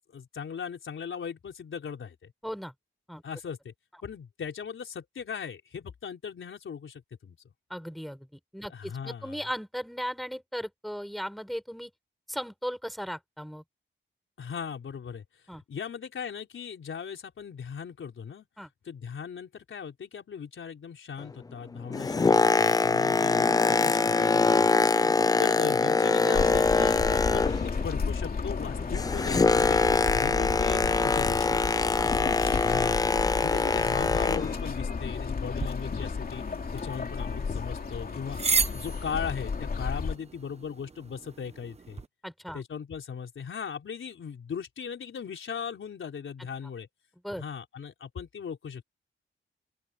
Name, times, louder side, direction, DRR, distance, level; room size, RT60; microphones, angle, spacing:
voice 1, 0.1-2.3 3.2-3.7 4.0-7.4 8.7-9.4 14.4-15.2 15.7-18.5 18.8-25.0 25.4-27.6 27.8-31.6 32.6-33.1 33.4-36.4 36.7-38.4 38.7-42.0 42.5-46.9 47.4-48.8, left 7 dB, 85° left, 4.4 m, -38 dB
voice 2, 2.4-2.7 3.1-3.2 7.7-11.9 12.3-13.6 15.5-15.6 18.6-18.7 25.0-25.1 31.4-32.1 33.2-33.3 42.2-42.6 47.2-47.4, equal, ahead, 6.4 m, -37 dB
Boat Water vehicle, 21.7-27.9 28.2-34.6 35.2-35.4, left 4 dB, 20° left, 0.3 m, -24 dB
sound 1, 26.3-40.2, left 5 dB, 50° left, 2.9 m, -33 dB
sound 2, 35.6-42.1, right 5 dB, 30° right, 1.0 m, -35 dB
open air
wide cardioid pair, 160°, 20 cm